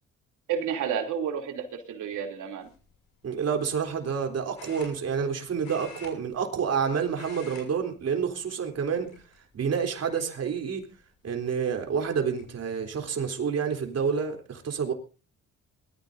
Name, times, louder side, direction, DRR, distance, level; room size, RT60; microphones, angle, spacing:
voice 1, 0.5-2.7, right 8 dB, 80° right, 3.2 m, -31 dB
sound 1, 2.6-2.9 4.6-5.3 5.6-6.8 7.1-7.7 8.0-8.2 9.0-9.6 10.1-10.2 11.7-11.8 12.1-12.5, left 4 dB, 70° left, 6.4 m, -47 dB
voice 2, 3.2-9.1 9.5-10.9 11.2-14.9, right 6 dB, 55° right, 3.5 m, -28 dB
22.5 x 14.0 x 2.7 m
cardioid pair, 90°, 30 cm